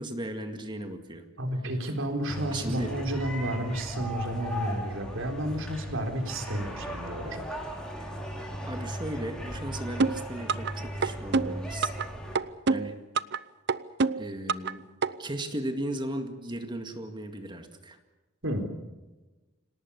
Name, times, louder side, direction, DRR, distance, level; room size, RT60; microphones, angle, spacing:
voice 1, 0.0-1.3 2.5-3.0 8.7-11.9 12.7-13.0 14.1-14.8 15.2-18.0, right 1 dB, 25° right, 6 dB, 2.0 m, -36 dB
voice 2, 1.4-7.4 18.4-18.7, right 1 dB, 75° right, 4 dB, 3.9 m, -31 dB
sound 1, 2.3-12.4, equal, 5° left, 5.0 m, -37 dB
sound 2, 10.0-10.7 11.0-12.1 12.3-13.4 13.7-14.7 15.0-15.1, right 4 dB, 60° right, 0.7 m, -26 dB
27.5 x 18.5 x 7.0 m, 1.1 s
head